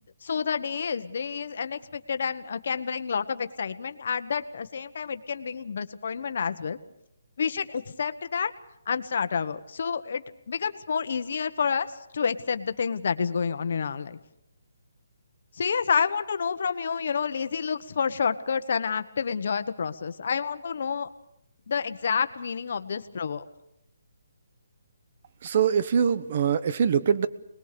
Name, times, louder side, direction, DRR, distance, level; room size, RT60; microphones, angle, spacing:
voice 1, 0.2-6.8 7.4-8.5 8.9-14.2 15.5-21.1 21.7-23.4, left 6 dB, 50° left, 10 dB, 1.3 m, -29 dB
voice 2, 25.4-27.3, right 7 dB, 35° right, 15 dB, 1.0 m, -23 dB
25.5 x 20.5 x 6.9 m, 0.79 s
hypercardioid pair, 170°, 0 cm